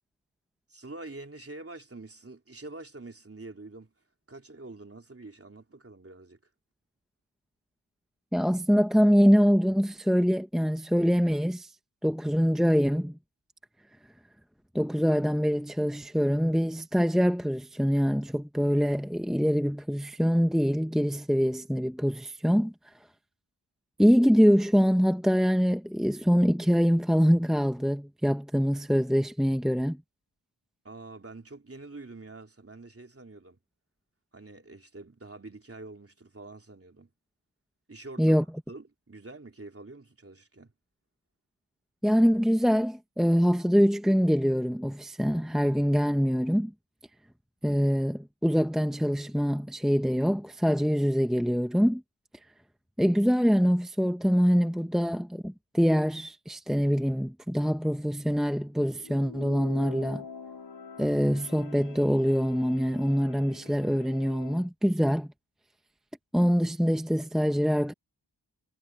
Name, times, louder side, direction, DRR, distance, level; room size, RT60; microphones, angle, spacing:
voice 1, 0.7-3.9 4.3-6.4 30.8-33.6 34.3-37.1 37.9-38.4 38.7-40.7, right 2 dB, 35° right, 3.4 m, -46 dB
voice 2, 8.3-11.7 12.0-13.2 14.7-22.7 24.0-30.0 38.2-38.4 42.0-46.7 47.6-52.0 53.0-60.2 61.0-65.3 66.3-67.9, equal, ahead, 0.9 m, -24 dB
sound 1, 58.9-64.7, left 5 dB, 75° left, 4.8 m, -45 dB
wide cardioid pair, 85°, 42 cm